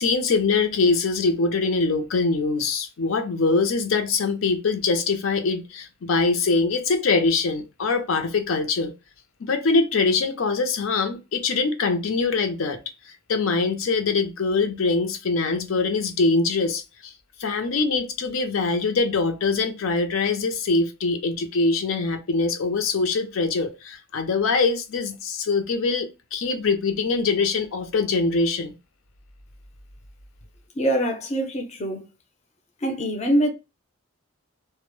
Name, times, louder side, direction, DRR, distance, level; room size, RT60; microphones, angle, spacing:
voice 1, 0.0-8.9 9.4-12.8 13.1-17.1 17.4-28.7, left 4 dB, 80° left, 0.5 m, -23 dB
voice 2, 30.8-32.1 32.8-33.5, right 1 dB, 35° left, 0.5 m, -24 dB
2.0 x 2.0 x 2.9 m
head